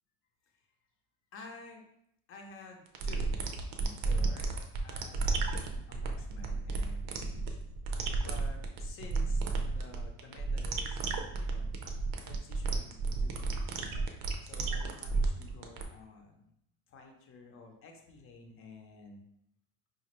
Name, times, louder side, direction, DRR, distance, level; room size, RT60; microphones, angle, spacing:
voice 1, 1.3-1.8 2.3-3.3 3.8-7.6 8.2-9.4 9.7-11.7 12.2-13.7 14.4-16.5 16.9-19.2, left 3 dB, 35° left, 3 dB, 0.5 m, -52 dB
sound 1, 2.9-15.8, right 3 dB, 60° right, 0.6 m, -32 dB
5.0 x 2.4 x 2.9 m, 0.77 s
cardioid pair, 175°, 39 cm